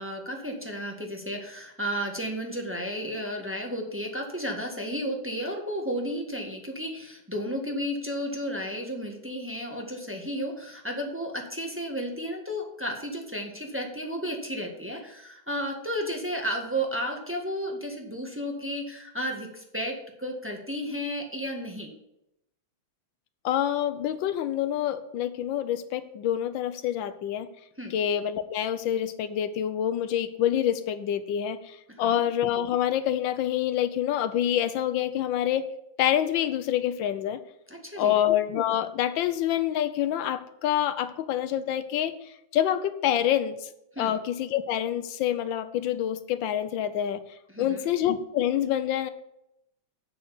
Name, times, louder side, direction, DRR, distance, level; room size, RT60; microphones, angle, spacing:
voice 1, 0.0-21.9 27.8-27.9 31.9-32.2 37.7-38.1 43.9-44.1 47.5-47.9, equal, 5° right, 1 dB, 1.3 m, -33 dB
voice 2, 23.4-27.5 27.9-35.7 36.0-37.4 38.0-42.2 42.5-43.7 44.0-47.2 47.6-49.1, left 10 dB, 80° left, 13 dB, 1.4 m, -27 dB
7.9 x 6.4 x 6.8 m, 0.81 s
omnidirectional pair, 2.1 m